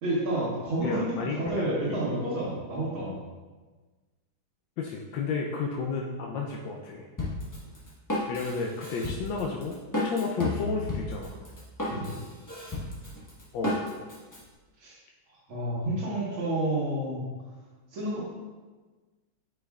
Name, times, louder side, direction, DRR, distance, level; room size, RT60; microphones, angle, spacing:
voice 1, 0.0-3.1 11.9-12.1 14.8-15.0 15.5-17.2 17.9-18.2, right 1 dB, 80° right, -10 dB, 2.3 m, -29 dB
voice 2, 0.8-1.6 4.8-7.1 8.3-11.4 13.5-13.8, left 4 dB, 75° left, -1 dB, 1.2 m, -32 dB
Drum kit, 7.2-14.4, left 1 dB, 15° left, 0.6 m, -33 dB
8.7 x 4.6 x 2.4 m, 1.3 s
omnidirectional pair, 2.3 m